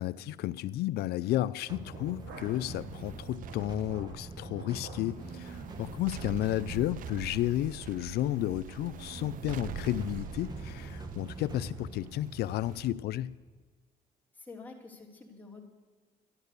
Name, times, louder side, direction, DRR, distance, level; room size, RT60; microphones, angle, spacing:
voice 1, 0.0-13.3, left 14 dB, 75° left, 15 dB, 0.5 m, -32 dB
sound 1, 1.6-2.8 3.1-5.1 5.5-5.6 6.1-6.4 6.7-6.8 7.2-7.4, right 3 dB, 85° right, 2.9 m, -51 dB
sound 2, 1.7-13.6, right 2 dB, 25° right, 1.4 m, -45 dB
sound 3, 1.7-12.9, right 10 dB, 55° right, 0.5 m, -45 dB
voice 2, 14.3-15.6, left 3 dB, 10° left, -1 dB, 3.1 m, -48 dB
13.0 x 12.0 x 6.7 m, 1.4 s
cardioid pair, 110°, 17 cm